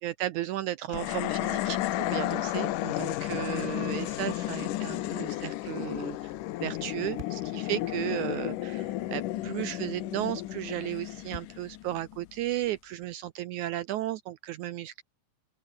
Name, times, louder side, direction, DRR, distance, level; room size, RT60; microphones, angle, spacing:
voice 1, 0.0-6.3 6.6-15.0, right 14 dB, 75° right, 1.9 m, -34 dB
sound 1, 0.9-12.3, left 15 dB, 75° left, 2.3 m, -33 dB
sound 2, 3.1-3.4 4.0-6.7 7.2-7.7 8.5-8.6 8.9-9.0 10.6-12.9, right 1 dB, 15° right, 7.6 m, -50 dB
open air
omnidirectional pair, 4.0 m